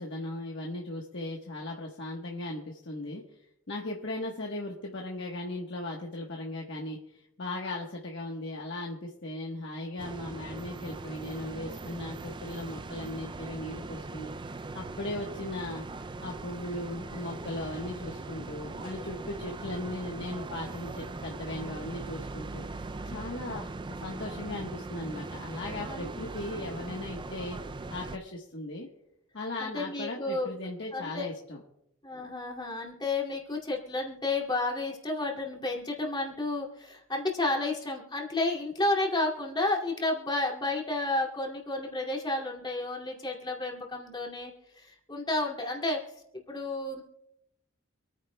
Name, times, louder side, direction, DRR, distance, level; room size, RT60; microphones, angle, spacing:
voice 1, 0.0-3.2 3.7-7.0 7.4-14.3 14.7-15.8 16.2-22.6 23.0-23.7 24.0-27.6 27.9-28.9 29.3-31.6, left 2 dB, 55° left, -1 dB, 1.2 m, -37 dB
sound 1, 10.0-28.2, right 3 dB, 20° right, 0.3 m, -40 dB
voice 2, 26.5-27.0 29.6-30.5 30.9-31.2 32.0-46.0 46.3-47.0, left 2 dB, 20° left, -2 dB, 2.4 m, -31 dB
27.0 x 9.5 x 2.2 m, 0.80 s
head